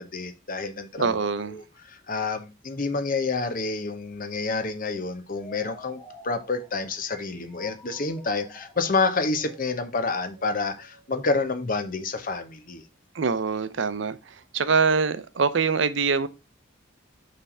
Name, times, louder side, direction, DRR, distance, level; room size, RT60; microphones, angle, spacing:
voice 1, 0.0-12.8, left 3 dB, 45° left, 0.9 m, -29 dB
voice 2, 1.0-1.6 13.1-14.2 14.5-16.3, right 5 dB, 70° right, 0.6 m, -24 dB
sound 1, 5.3-12.0, left 1 dB, ahead, 1.5 m, -50 dB
5.8 x 3.4 x 5.3 m
head